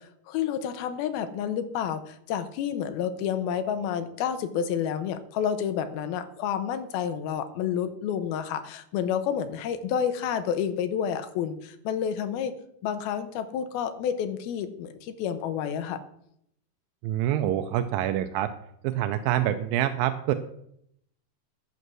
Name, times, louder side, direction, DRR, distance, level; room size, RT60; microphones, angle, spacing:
voice 1, 0.0-12.5 12.8-16.0, left 8 dB, 80° left, 10 dB, 2.6 m, -29 dB
voice 2, 17.0-18.5 18.8-20.3, right 12 dB, 80° right, 9 dB, 2.1 m, -26 dB
11.5 x 8.0 x 6.2 m, 0.73 s
omnidirectional pair, 4.6 m